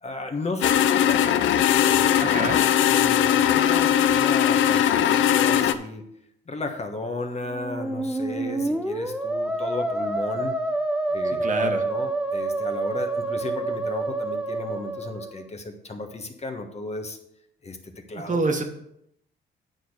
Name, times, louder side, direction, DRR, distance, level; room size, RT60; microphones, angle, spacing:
voice 1, 0.0-1.4 1.7-6.1 6.5-10.5 11.1-17.2 17.6-17.8 18.1-18.4, left 3 dB, 35° left, 5 dB, 1.2 m, -34 dB
sound 1, 0.6-5.7, left 10 dB, 75° left, 0.6 m, -20 dB
voice 2, 2.2-2.6 11.2-11.8 18.1-18.6, right 3 dB, 40° right, 4 dB, 1.4 m, -27 dB
Musical instrument, 7.4-15.5, right 2 dB, 5° right, 0.9 m, -28 dB
9.1 x 4.3 x 6.5 m, 0.77 s
cardioid pair, 90°, 20 cm